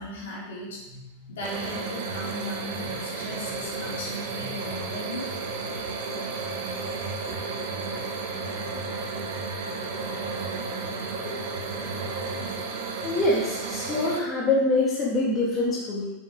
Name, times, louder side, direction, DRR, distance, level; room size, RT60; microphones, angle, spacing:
voice 1, 0.0-5.2, left 1 dB, 60° left, -5 dB, 3.5 m, -37 dB
sound 1, 1.4-14.2, right 4 dB, 50° right, 1.2 m, -33 dB
voice 2, 13.0-16.1, left 2 dB, 25° left, -4 dB, 1.9 m, -25 dB
7.7 x 6.4 x 4.8 m, 0.99 s
figure-of-eight pair, 90°, 0 cm